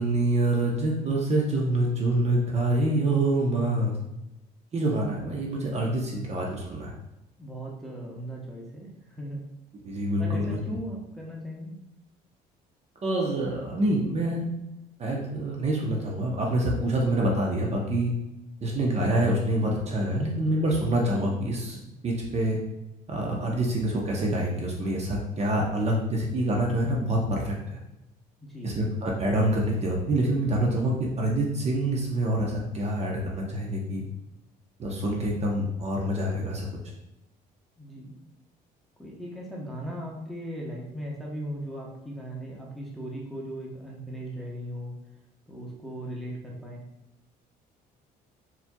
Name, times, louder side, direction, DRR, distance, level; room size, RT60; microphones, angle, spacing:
voice 1, 0.0-4.0 4.7-6.9 9.8-10.6 13.0-14.5 15.0-18.1 18.6-21.8 22.0-22.6 23.1-27.8 28.6-34.0 34.8-36.7, right 1 dB, 40° right, -1 dB, 0.9 m, -26 dB
voice 2, 7.4-9.4 10.2-11.8 28.4-28.7 37.8-38.2 39.0-45.0 45.5-46.8, equal, ahead, -4 dB, 1.1 m, -38 dB
4.4 x 4.0 x 2.3 m, 0.93 s
cardioid pair, 110°, 17 cm